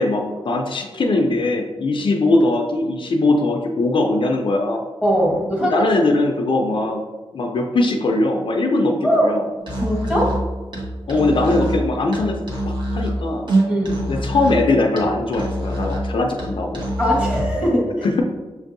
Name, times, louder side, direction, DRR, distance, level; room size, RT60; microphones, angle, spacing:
voice 1, 0.0-4.8 5.7-7.0 7.3-9.4 11.1-13.5 14.1-16.8, left 2 dB, 55° left, 2 dB, 0.4 m, -20 dB
voice 2, 5.0-5.9 9.0-9.3 9.8-10.4 13.7-14.1 17.0-18.1, equal, 10° right, -3 dB, 1.1 m, -20 dB
Musical instrument, 9.6-17.6, right 1 dB, 50° right, 0.9 m, -25 dB
6.4 x 2.6 x 2.6 m, 1.3 s
wide cardioid pair, 160°, 10 cm